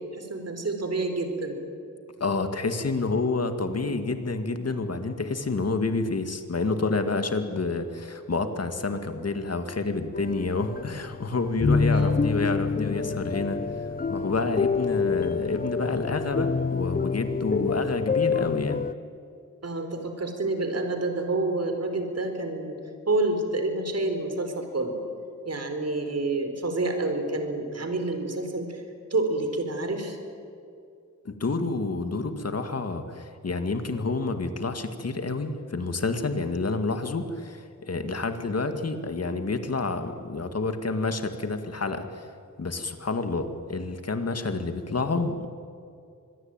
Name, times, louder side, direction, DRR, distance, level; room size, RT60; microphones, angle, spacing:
voice 1, 0.1-1.6 11.9-12.2 19.6-22.7 23.1-25.0 25.4-28.8 29.1-30.2, right 2 dB, 50° right, 6 dB, 4.4 m, -28 dB
voice 2, 2.2-13.6 14.1-18.8 31.3-42.3 42.6-45.5, left 3 dB, 50° left, 8 dB, 2.2 m, -29 dB
sound 1, 10.1-11.2 11.5-18.9, left 5 dB, 30° left, 0.5 m, -27 dB
25.5 x 21.5 x 9.0 m, 2.5 s
wide cardioid pair, 90°, 32 cm